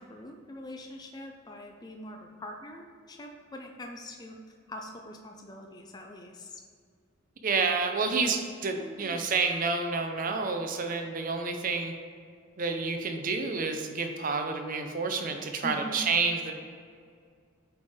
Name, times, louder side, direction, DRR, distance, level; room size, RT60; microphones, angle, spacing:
voice 1, 0.0-4.4 4.7-6.6 8.8-9.2 15.6-16.1, left 1 dB, 20° left, 2 dB, 0.4 m, -43 dB
voice 2, 7.4-11.9 12.6-16.5, right 4 dB, 40° right, 5 dB, 0.5 m, -29 dB
8.2 x 3.4 x 3.5 m, 2.1 s
head